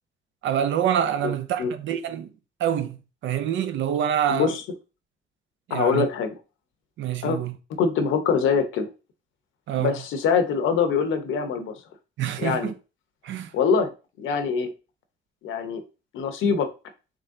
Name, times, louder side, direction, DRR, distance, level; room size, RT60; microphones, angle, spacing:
voice 1, 0.4-2.3 2.6-3.0 3.2-4.5 5.7-6.0 7.0-7.5 9.7-10.0 12.2-12.7 13.2-13.5, right 9 dB, 70° right, 0.5 m, -26 dB
voice 2, 4.3-4.6 5.7-6.3 7.2-7.4 7.8-8.9 9.7-11.7 12.4-12.7 13.5-13.9 14.2-14.7 15.4-15.8 16.1-16.7, left 6 dB, 80° left, 0.8 m, -23 dB
3.7 x 3.3 x 2.6 m
cardioid pair, 90°, 20 cm